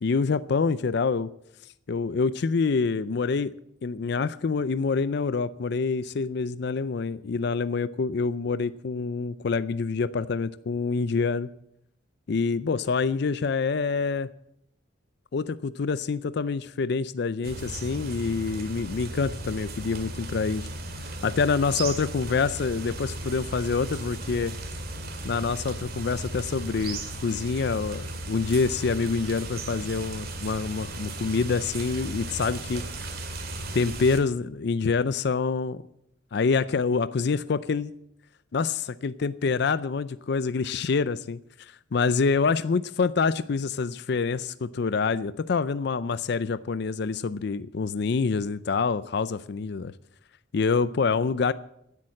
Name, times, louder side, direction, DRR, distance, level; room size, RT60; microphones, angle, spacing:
voice 1, 0.0-1.3 1.9-3.5 3.8-11.5 12.3-14.3 15.3-20.7 21.2-24.5 25.2-32.8 33.7-35.8 36.3-37.9 38.5-41.4 41.9-49.9 50.5-51.5, left 4 dB, 60° left, 15 dB, 0.4 m, -26 dB
sound 1, 17.4-34.2, right 2 dB, 50° right, 2.1 m, -36 dB
16.0 x 8.6 x 7.6 m, 0.77 s
head